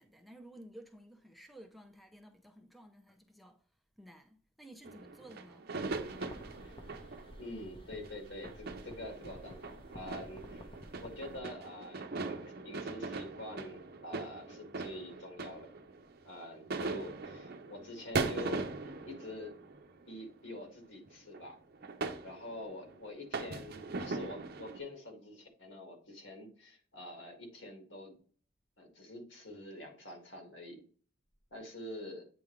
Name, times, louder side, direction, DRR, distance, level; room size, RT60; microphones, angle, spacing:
voice 1, 0.0-3.6 4.0-6.5, right 1 dB, ahead, 0.5 m, -55 dB
sound 1, 4.8-16.4 16.7-20.3 21.1-21.4 21.7-22.9 23.3-24.8, right 3 dB, 55° right, 0.6 m, -40 dB
sound 2, 5.8-11.4, equal, 30° left, 0.8 m, -53 dB
voice 2, 7.4-10.7 11.0-15.7 16.2-19.6 20.1-21.6 22.2-28.2 28.8-30.8 31.5-32.3, left 1 dB, 75° left, 1.9 m, -46 dB
8.3 x 3.7 x 3.1 m
head